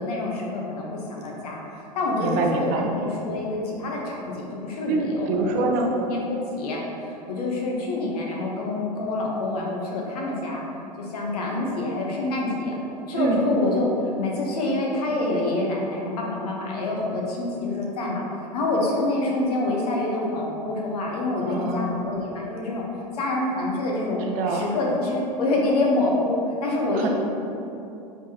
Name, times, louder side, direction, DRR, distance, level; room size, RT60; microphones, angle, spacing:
voice 1, 0.0-1.6 1.9-10.6 11.0-12.8 13.1-13.9 14.2-18.2 18.5-22.8 23.1-24.2 24.5-27.1, left 2 dB, 65° left, -2 dB, 0.9 m, -26 dB
voice 2, 2.2-2.9 4.9-5.9 13.1-13.4 21.4-21.9 24.3-24.6 27.0-27.1, right 4 dB, 45° right, 2 dB, 0.5 m, -25 dB
4.4 x 3.6 x 2.8 m, 2.8 s
figure-of-eight pair, 90°, 21 cm